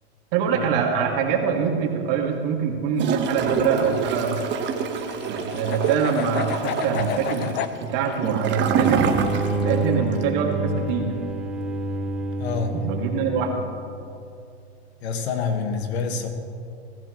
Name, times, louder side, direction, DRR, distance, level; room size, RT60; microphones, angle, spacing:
voice 1, 0.3-4.4 5.3-7.5 7.8-9.1 9.6-11.2 12.7-13.5, right 6 dB, 55° right, 1 dB, 2.6 m, -24 dB
sound 1, 3.0-7.7, left 8 dB, 35° left, 0.8 m, -32 dB
Gurgling / Toilet flush, 3.0-9.8 10.1-10.2, right 6 dB, 35° right, 1.4 m, -26 dB
sound 2, 8.6-14.0, right 2 dB, 5° right, 2.1 m, -28 dB
voice 2, 12.4-12.7 15.0-16.3, left 5 dB, 70° left, 5 dB, 2.0 m, -27 dB
22.5 x 15.0 x 3.3 m, 2.5 s
hypercardioid pair, 115°, 33 cm